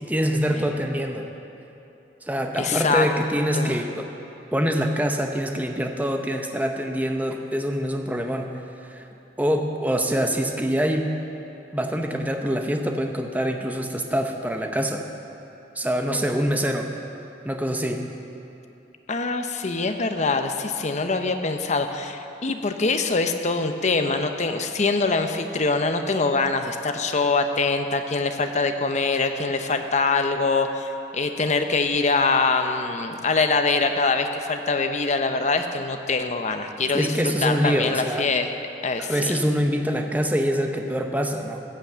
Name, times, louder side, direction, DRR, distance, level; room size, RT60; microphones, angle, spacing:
voice 1, 0.0-1.3 2.2-4.1 4.5-9.0 9.4-11.1 11.7-15.1 15.8-16.9 17.4-18.1 36.9-38.3 39.0-41.6, equal, 10° right, 4 dB, 0.7 m, -25 dB
voice 2, 2.6-3.1 3.5-3.8 19.1-37.1 37.4-38.5 38.8-39.4, left 3 dB, 40° left, 6 dB, 0.7 m, -24 dB
14.5 x 5.9 x 8.0 m, 2.9 s
head